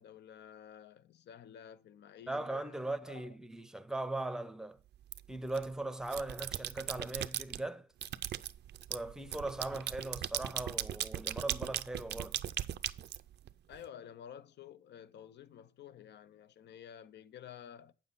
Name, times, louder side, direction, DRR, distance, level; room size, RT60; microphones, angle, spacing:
voice 1, 0.0-3.4 13.7-17.9, left 9 dB, 60° left, 0.6 m, -52 dB
voice 2, 2.3-4.8 5.3-7.9 8.9-12.4, right 2 dB, 5° right, 0.7 m, -39 dB
sound 1, 5.1-5.6 6.0-7.6 8.0-13.8, right 11 dB, 60° right, 0.5 m, -38 dB
8.7 x 7.2 x 4.0 m
cardioid pair, 90°, 20 cm